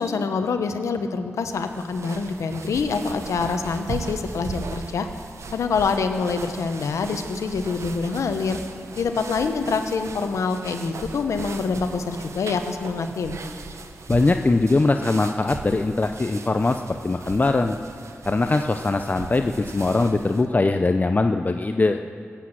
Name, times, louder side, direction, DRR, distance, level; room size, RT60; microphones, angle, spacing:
voice 1, 0.0-5.1 5.5-8.6 9.0-13.4, left 4 dB, 85° left, 7 dB, 0.9 m, -26 dB
sound 1, 1.5-20.5, right 4 dB, 70° right, 1.0 m, -38 dB
voice 2, 14.1-17.8 18.3-22.0, left 3 dB, 35° left, 6 dB, 0.6 m, -21 dB
17.5 x 8.3 x 7.5 m, 2.3 s
cardioid pair, 55°, 5 cm